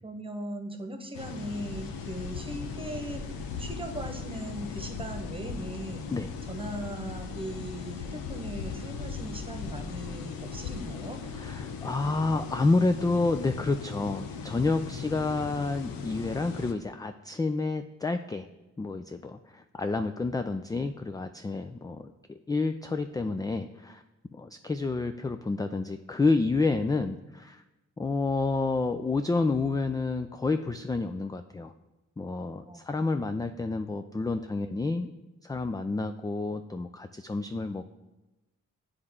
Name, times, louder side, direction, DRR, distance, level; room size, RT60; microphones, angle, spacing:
voice 1, 0.0-3.2 3.6-6.1 6.5-11.2 32.7-32.9, right 1 dB, 15° right, 4 dB, 1.2 m, -39 dB
sound 1, 1.1-16.7, left 6 dB, 90° left, 0.6 m, -38 dB
voice 2, 11.4-18.5 18.8-24.0 24.3-27.6 28.0-31.7 32.2-35.1 35.4-37.8, left 3 dB, 10° left, 8 dB, 0.3 m, -29 dB
9.5 x 3.3 x 3.6 m, 1.1 s
supercardioid pair, 40°, 35 cm